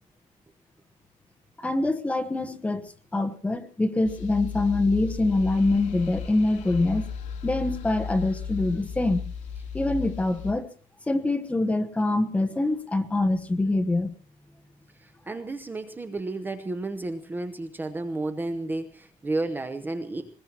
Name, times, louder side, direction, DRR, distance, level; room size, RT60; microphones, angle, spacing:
voice 1, 1.6-7.1 7.4-9.2 9.7-10.7 11.1-14.1, left 2 dB, 10° left, 8 dB, 1.1 m, -25 dB
sound 1, 4.0-10.5, left 6 dB, 60° left, 3.1 m, -35 dB
voice 2, 14.9-20.4, right 2 dB, 15° right, 7 dB, 0.8 m, -32 dB
22.0 x 21.0 x 3.0 m, 0.41 s
cardioid pair, 170°, 15 cm